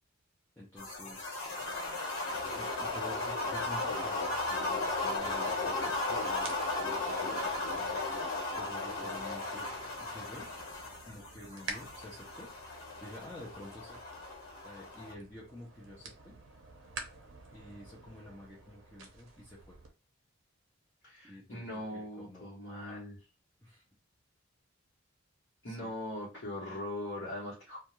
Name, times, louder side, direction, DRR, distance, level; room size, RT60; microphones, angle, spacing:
voice 1, 0.6-1.5 2.5-6.5 6.8-8.0 8.6-9.7 10.0-10.5 11.1-12.5 13.0-14.0 14.6-16.3 17.5-19.8 21.2-22.5 22.9-23.0 23.6-23.8 25.6-25.9, left 1 dB, 10° left, -6 dB, 0.6 m, -49 dB
sound 1, 0.8-15.1, left 2 dB, 85° left, 1.1 m, -36 dB
sound 2, 2.3-19.9, right 3 dB, 60° right, 0.6 m, -51 dB
voice 2, 21.0-23.2 25.6-27.8, left 1 dB, 60° left, -7 dB, 1.0 m, -40 dB
2.4 x 2.3 x 2.9 m, 0.30 s
head